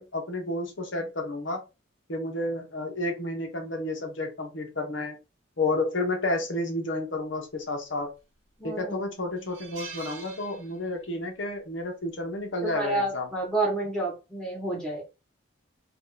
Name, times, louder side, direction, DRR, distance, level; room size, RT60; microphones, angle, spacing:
voice 1, 0.0-1.6 2.1-5.2 5.6-8.1 8.6-13.3, left 2 dB, 65° left, 1.0 m, -31 dB
sound 1, 8.0-8.5 8.9-9.0 9.4-11.2 11.5-11.7 12.9-13.2, right 5 dB, 70° right, 0.8 m, -45 dB
voice 2, 8.6-9.0 12.6-15.0, right 2 dB, 5° left, 1.3 m, -29 dB
2.9 x 2.5 x 3.8 m
head